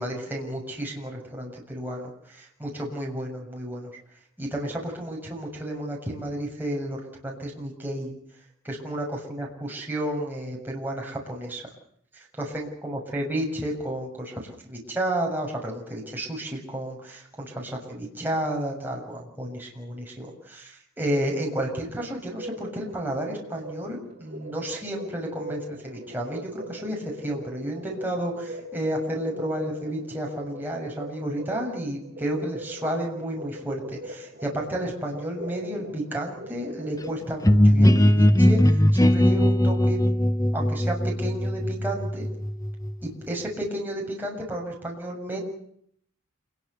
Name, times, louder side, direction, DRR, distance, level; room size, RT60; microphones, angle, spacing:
voice 1, 0.0-3.9 4.4-8.1 8.6-11.6 12.1-40.0 40.5-42.3 43.0-45.4, right 1 dB, 10° right, -1 dB, 7.0 m, -32 dB
sound 1, 21.9-37.3, right 1 dB, 45° right, 6.8 m, -41 dB
sound 2, 37.4-43.1, equal, 15° left, 1.0 m, -20 dB
28.0 x 21.5 x 6.9 m, 0.67 s
head